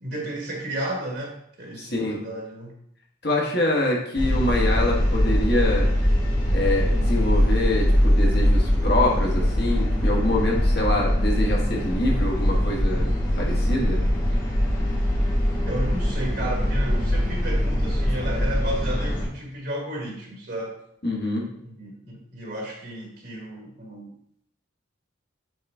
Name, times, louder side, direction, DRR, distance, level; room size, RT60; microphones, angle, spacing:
voice 1, 0.0-2.8 15.7-20.7 21.6-24.1, right 1 dB, 50° right, -1 dB, 1.5 m, -33 dB
voice 2, 1.8-2.2 3.2-5.9 6.5-14.0 21.0-21.5, left 1 dB, 55° left, -1 dB, 1.6 m, -25 dB
sound 1, 4.2-19.3, equal, 80° left, 2.1 m, -22 dB
7.8 x 4.1 x 3.6 m, 0.70 s
head